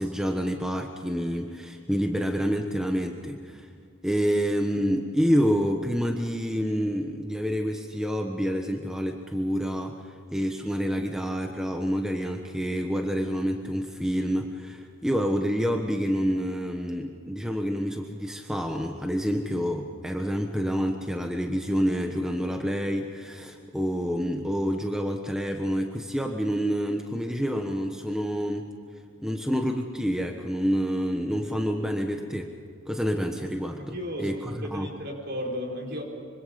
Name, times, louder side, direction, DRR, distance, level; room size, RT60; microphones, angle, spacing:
voice 1, 0.0-3.7 4.0-9.9 10.3-28.7 29.2-32.5 32.9-34.9, equal, 5° right, 3 dB, 1.2 m, -28 dB
voice 2, 33.8-36.0, equal, 50° right, 0 dB, 4.7 m, -34 dB
25.5 x 25.5 x 5.3 m, 2.3 s
head